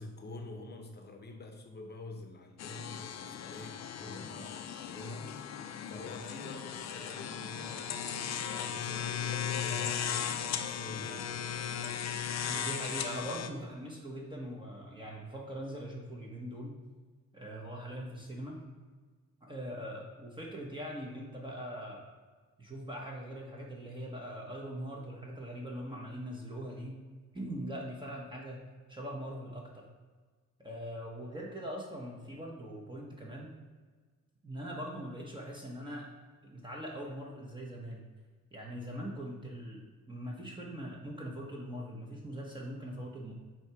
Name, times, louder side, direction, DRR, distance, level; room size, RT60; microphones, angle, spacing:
voice 1, 0.0-3.7 4.0-5.4 5.9-8.0 8.6-11.5, left 2 dB, 35° left, 4 dB, 0.8 m, -46 dB
sound 1, 2.6-13.5, left 8 dB, 60° left, 0.5 m, -37 dB
Telephone, 7.2-12.2, right 5 dB, 60° right, 0.6 m, -53 dB
voice 2, 12.5-16.8 17.3-18.6 19.4-22.0 22.6-27.0 27.3-28.6 28.9-29.9 30.6-33.6 34.4-36.1 36.4-38.0 38.5-39.8 40.1-43.3, equal, 15° right, -2 dB, 1.0 m, -41 dB
7.7 x 2.9 x 4.7 m, 1.4 s
cardioid pair, 125°, 30 cm